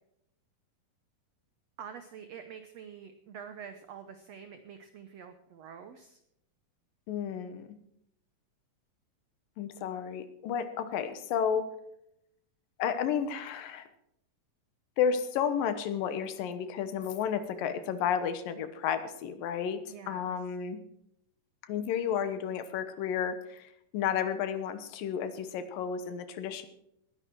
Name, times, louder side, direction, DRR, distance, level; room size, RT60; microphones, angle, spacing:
voice 1, 1.8-6.2 17.6-17.8 19.9-20.3, right 7 dB, 75° right, 9 dB, 1.5 m, -47 dB
voice 2, 7.1-7.7 9.6-11.7 12.8-13.9 15.0-20.8 21.7-26.7, left 8 dB, 75° left, 11 dB, 2.7 m, -32 dB
20.0 x 10.5 x 4.6 m, 0.78 s
omnidirectional pair, 4.1 m